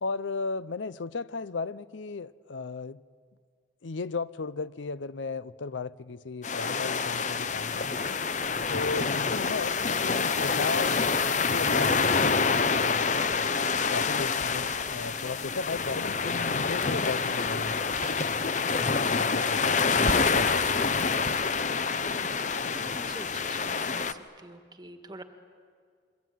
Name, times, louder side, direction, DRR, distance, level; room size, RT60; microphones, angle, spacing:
voice 1, 0.0-3.0 3.8-8.2 8.7-13.5 13.9-18.4 18.8-19.8 20.2-21.1, left 4 dB, 85° left, 0.6 m, -36 dB
sound 1, 6.4-24.1, left 5 dB, 40° left, 0.8 m, -27 dB
sound 2, 13.1-16.6 16.9-21.7, right 1 dB, 40° right, 1.5 m, -43 dB
voice 2, 22.7-25.2, right 1 dB, 20° right, 1.7 m, -46 dB
27.0 x 23.0 x 9.3 m
head